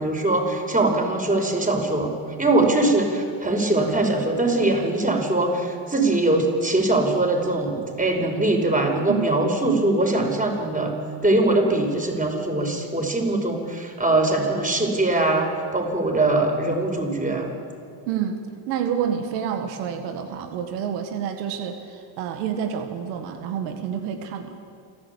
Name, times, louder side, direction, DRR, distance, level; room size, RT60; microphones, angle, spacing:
voice 1, 0.0-2.1 2.4-10.9 11.2-17.5, right 2 dB, 15° right, 3 dB, 5.5 m, -22 dB
voice 2, 18.1-18.4 18.7-24.5, right 8 dB, 90° right, 6 dB, 1.8 m, -28 dB
28.5 x 11.0 x 8.5 m, 2.3 s
supercardioid pair, 70°, 49 cm